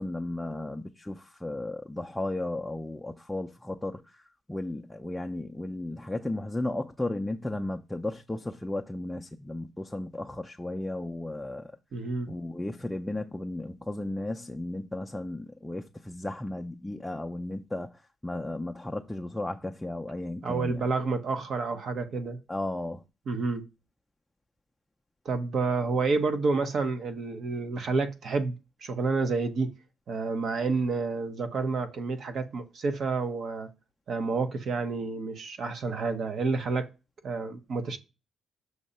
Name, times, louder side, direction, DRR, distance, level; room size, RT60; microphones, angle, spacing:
voice 1, 0.0-11.7 12.3-20.9 22.5-23.0, left 1 dB, 10° left, 0.5 m, -34 dB
voice 2, 11.9-12.3 20.4-22.4 23.3-23.6 25.2-28.5 28.8-29.7 30.1-33.7 34.1-36.9 37.2-38.0, right 4 dB, 60° right, 0.9 m, -29 dB
6.4 x 2.8 x 5.4 m
cardioid pair, 90°, 0 cm